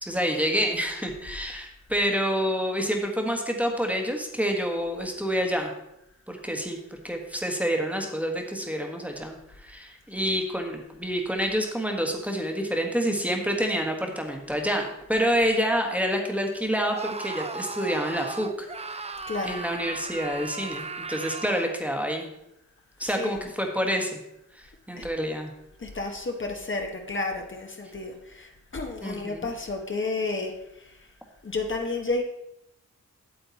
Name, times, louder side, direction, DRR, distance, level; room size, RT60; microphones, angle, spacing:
voice 1, 0.0-5.7 6.3-19.1 19.4-22.3 23.0-24.2 24.5-25.5 29.0-29.5, equal, 5° right, 2 dB, 1.4 m, -28 dB
Screaming, 16.9-21.8, right 4 dB, 20° right, 0.4 m, -37 dB
voice 2, 19.3-19.6 23.0-23.4 25.0-25.1 25.8-31.1 31.4-32.2, left 3 dB, 40° left, 2 dB, 1.2 m, -31 dB
8.5 x 7.9 x 4.1 m, 0.83 s
wide cardioid pair, 105°, 31 cm